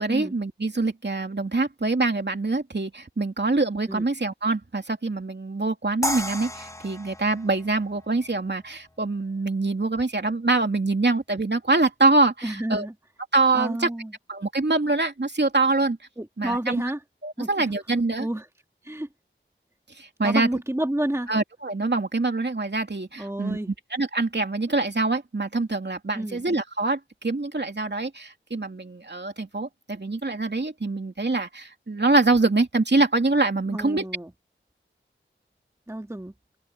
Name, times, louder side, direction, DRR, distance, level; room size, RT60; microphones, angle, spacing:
voice 1, 0.0-12.9 13.3-13.9 14.3-16.0 16.4-16.8 17.2-18.3 20.0-20.5 21.3-34.1, right 3 dB, 55° right, 2.8 m, -24 dB
sound 1, 6.0-9.1, left 1 dB, 15° left, 1.1 m, -33 dB
voice 2, 12.4-12.9 13.5-14.1 16.2-17.0 17.4-17.5 18.2-18.5 18.8-19.1 20.2-21.3 23.2-23.7 26.1-26.4 33.7-34.3 35.9-36.3, right 1 dB, 15° right, 1.8 m, -30 dB
open air
wide cardioid pair, 55°, 21 cm